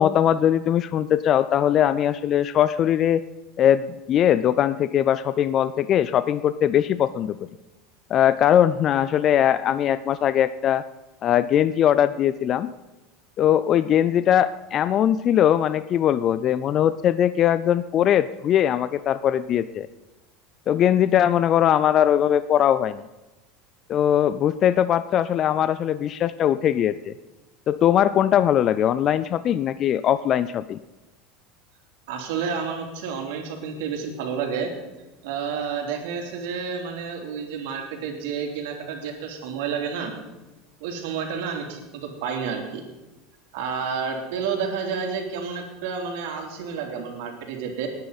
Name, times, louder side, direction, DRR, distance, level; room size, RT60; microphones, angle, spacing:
voice 1, 0.0-3.2 3.6-7.5 8.1-10.8 11.2-12.7 13.4-19.9 20.7-23.0 23.9-27.1 27.7-30.8, left 10 dB, 40° left, 15 dB, 0.4 m, -20 dB
voice 2, 32.1-34.7 35.2-40.1 40.8-42.8 43.5-47.9, right 6 dB, 75° right, 2 dB, 3.1 m, -30 dB
20.0 x 9.6 x 4.1 m, 1.1 s
supercardioid pair, 115°, 0 cm